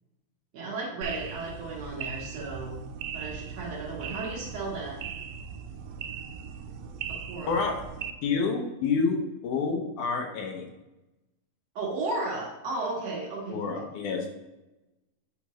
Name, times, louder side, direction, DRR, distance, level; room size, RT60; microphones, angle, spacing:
voice 1, 0.5-2.9 3.1-5.0 7.1-7.6 11.8-13.8, right 2 dB, 60° right, -3 dB, 2.1 m, -34 dB
sound 1, 1.0-8.1, right 7 dB, 90° right, 2.4 m, -39 dB
voice 2, 7.5-7.8 8.2-10.7 13.5-14.4, left 4 dB, 75° left, 2 dB, 2.2 m, -28 dB
8.3 x 5.1 x 3.0 m, 0.99 s
omnidirectional pair, 3.9 m